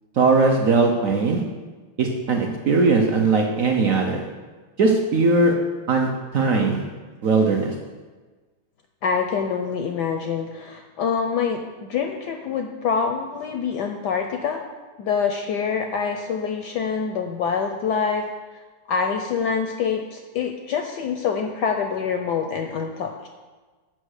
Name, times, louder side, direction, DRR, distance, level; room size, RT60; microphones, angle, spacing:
voice 1, 0.2-1.4 2.0-4.2 4.8-5.5 5.9-6.1 6.3-6.8 7.2-7.7, right 3 dB, 70° right, 2 dB, 0.7 m, -19 dB
voice 2, 9.0-14.6 15.0-18.2 18.9-23.3, left 6 dB, 75° left, 4 dB, 0.9 m, -25 dB
7.5 x 5.5 x 6.4 m, 1.3 s
omnidirectional pair, 2.3 m